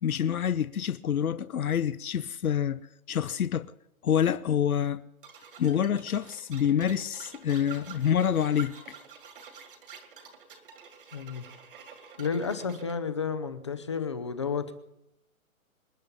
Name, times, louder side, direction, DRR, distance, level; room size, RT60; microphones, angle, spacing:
voice 1, 0.0-2.8 3.1-3.7 4.0-5.0 5.6-8.7, left 9 dB, 80° left, 0.9 m, -27 dB
sound 1, 5.2-13.0, right 7 dB, 40° right, 2.2 m, -48 dB
voice 2, 11.1-11.4 12.2-14.7, left 5 dB, 20° left, 0.7 m, -31 dB
26.0 x 9.3 x 5.4 m
hypercardioid pair, 170°, 43 cm